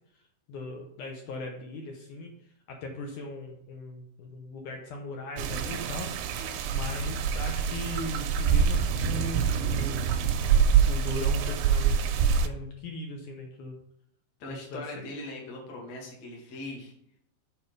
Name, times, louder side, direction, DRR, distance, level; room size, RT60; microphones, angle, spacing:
voice 1, 0.5-2.3 2.7-6.4 6.7-10.2 10.9-13.8 14.5-14.8, left 2 dB, 70° left, 2 dB, 2.0 m, -38 dB
sound 1, 5.4-12.5, right 7 dB, 90° right, 2.6 m, -25 dB
voice 2, 14.4-16.9, left 2 dB, 50° left, -1 dB, 2.4 m, -40 dB
7.0 x 4.9 x 5.0 m, 0.73 s
omnidirectional pair, 4.5 m